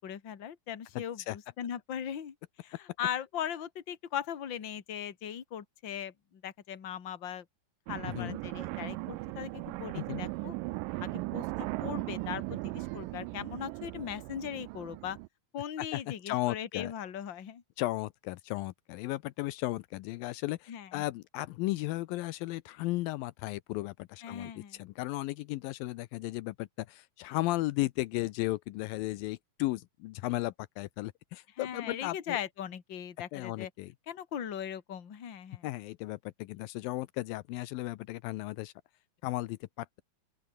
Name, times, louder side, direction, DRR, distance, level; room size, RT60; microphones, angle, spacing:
voice 1, 0.0-2.3 2.6-7.4 7.9-10.5 11.0-15.2 15.5-17.6 20.7-21.0 24.2-24.8 31.6-33.7 34.1-35.7, left 9 dB, 40° left, 2.2 m, -39 dB
voice 2, 1.0-1.4 8.2-8.4 10.0-10.2 15.8-16.9 17.8-32.4 33.3-33.9 35.6-38.7 39.2-40.0, left 18 dB, 80° left, 2.4 m, -35 dB
sound 1, 7.9-15.3, right 22 dB, 80° right, 2.1 m, -38 dB
open air
omnidirectional pair, 4.1 m